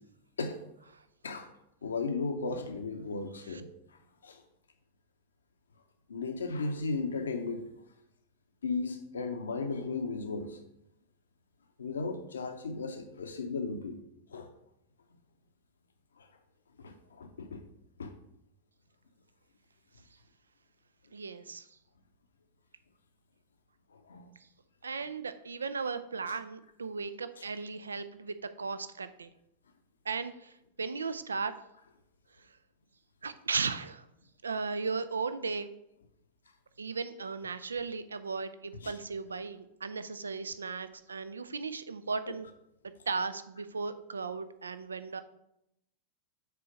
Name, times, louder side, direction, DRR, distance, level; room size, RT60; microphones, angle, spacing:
voice 1, 1.8-3.7 4.2-4.4 6.1-7.7 8.6-10.6 11.8-14.0 14.3-14.5 16.2-16.3 16.8-17.6 18.0-18.1 23.9-24.3 27.4-27.5 38.8-38.9, left 4 dB, 70° left, 6 dB, 0.7 m, -35 dB
voice 2, 21.1-21.7 24.8-29.3 30.1-31.5 33.2-34.0 34.4-35.7 36.8-42.5 43.1-45.2, right 4 dB, 75° right, 12 dB, 0.4 m, -36 dB
6.7 x 4.4 x 5.1 m, 0.80 s
figure-of-eight pair, 90°, 0 cm